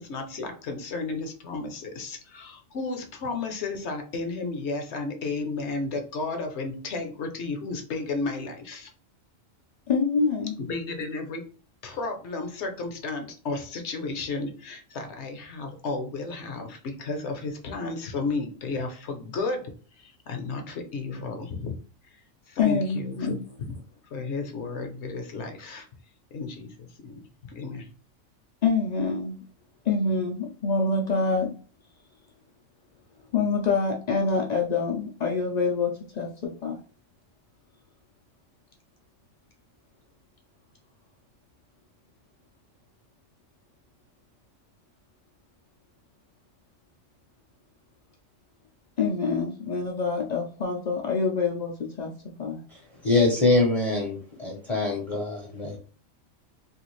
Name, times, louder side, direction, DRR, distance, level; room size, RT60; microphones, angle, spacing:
voice 1, 0.0-8.9 10.6-11.4 11.8-19.7 20.0-21.7 22.5-23.7 24.1-25.9 26.3-27.2 27.5-27.9, left 3 dB, 60° left, 5 dB, 0.9 m, -33 dB
voice 2, 9.9-10.5 22.6-23.4 28.6-29.4 29.9-31.5 33.3-36.8 49.0-52.1 52.4-52.6, left 4 dB, 80° left, 0 dB, 0.3 m, -26 dB
voice 3, 53.0-55.8, left 3 dB, 35° left, -2 dB, 0.6 m, -24 dB
3.4 x 2.4 x 3.0 m, 0.39 s
omnidirectional pair, 1.4 m